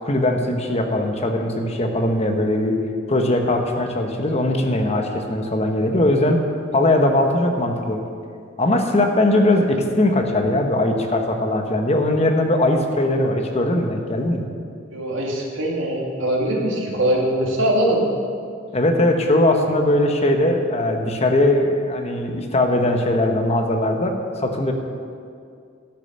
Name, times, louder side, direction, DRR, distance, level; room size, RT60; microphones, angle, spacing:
voice 1, 0.0-2.8 3.1-6.4 6.7-8.0 8.6-14.5 18.7-24.1 24.4-24.7, left 1 dB, 35° left, 4 dB, 1.1 m, -20 dB
voice 2, 14.9-18.0, right 1 dB, 90° right, -2 dB, 2.1 m, -22 dB
11.5 x 6.7 x 6.5 m, 2.3 s
head